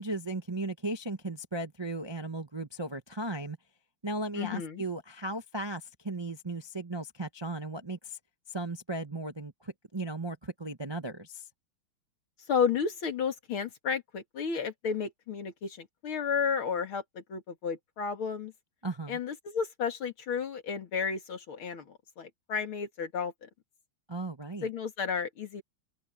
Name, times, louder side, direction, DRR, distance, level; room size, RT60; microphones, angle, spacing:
voice 1, 0.0-3.6 4.0-8.2 8.5-11.4 18.8-19.2 24.1-24.7, right 2 dB, 25° right, 0.5 m, -36 dB
voice 2, 4.3-4.8 12.5-18.5 19.1-23.5 24.6-25.6, left 6 dB, 80° left, 3.0 m, -32 dB
omnidirectional pair, 2.3 m